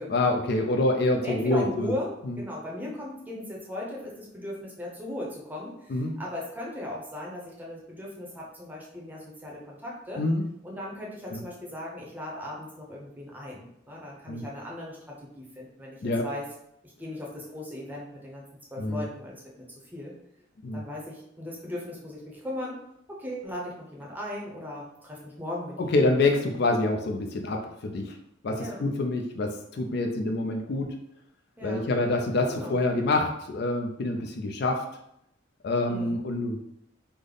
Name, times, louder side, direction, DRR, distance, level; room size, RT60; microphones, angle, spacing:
voice 1, 0.1-1.9 2.2-2.4 5.9-6.2 10.2-10.4 11.3-11.4 14.3-14.4 16.0-16.3 18.8-19.1 20.6-20.8 25.9-28.1 28.4-30.9 31.6-34.8 35.6-36.6, left 2 dB, 55° left, 3 dB, 0.4 m, -26 dB
voice 2, 1.2-10.2 10.6-16.4 16.8-18.4 18.7-19.7 19.9-20.1 20.7-22.8 23.1-25.9 28.6-28.8 31.6-31.9 32.5-32.8 35.9-36.2, left 1 dB, 10° right, -3 dB, 0.7 m, -38 dB
3.4 x 2.0 x 3.7 m, 0.76 s
head